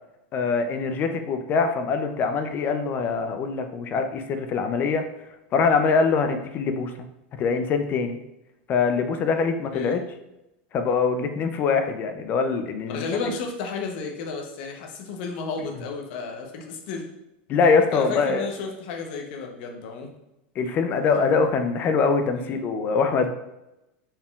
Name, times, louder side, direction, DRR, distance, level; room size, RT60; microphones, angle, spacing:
voice 1, 0.3-5.0 5.5-6.9 7.4-8.2 8.7-10.0 10.7-13.0 17.5-18.5 20.6-23.3, left 5 dB, 30° left, 7 dB, 0.3 m, -23 dB
voice 2, 12.9-17.1 17.9-20.1 22.3-22.6, left 4 dB, 60° left, 2 dB, 0.7 m, -32 dB
4.3 x 3.6 x 2.3 m, 0.91 s
supercardioid pair, 145°, 6 cm